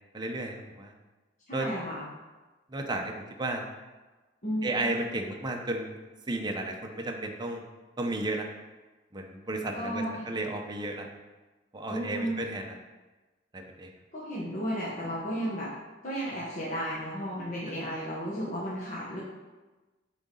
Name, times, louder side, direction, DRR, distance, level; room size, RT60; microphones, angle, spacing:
voice 1, 0.1-0.9 1.5-1.7 2.7-3.6 4.6-6.0 6.3-7.6 8.0-8.5 9.1-11.1 11.7-12.8 13.5-13.9, right 2 dB, 20° right, 2 dB, 0.7 m, -33 dB
voice 2, 1.5-2.1 4.4-4.9 9.7-10.3 11.9-12.5 14.1-15.7 16.0-19.2, equal, 40° left, -8 dB, 1.2 m, -33 dB
8.7 x 4.0 x 3.8 m, 1.2 s
head